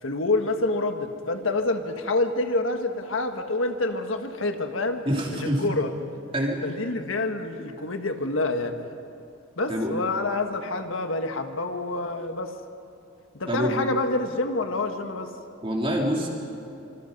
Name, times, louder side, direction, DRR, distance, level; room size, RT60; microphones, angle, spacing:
voice 1, 0.0-5.0 5.3-5.9 6.6-8.8 9.6-12.5 13.3-15.3, left 2 dB, 85° left, 6 dB, 1.6 m, -27 dB
voice 2, 5.0-5.6 6.3-6.6 9.7-9.9 13.5-13.7 15.6-16.3, equal, 30° right, -1 dB, 3.4 m, -26 dB
25.5 x 25.5 x 5.4 m, 2.7 s
head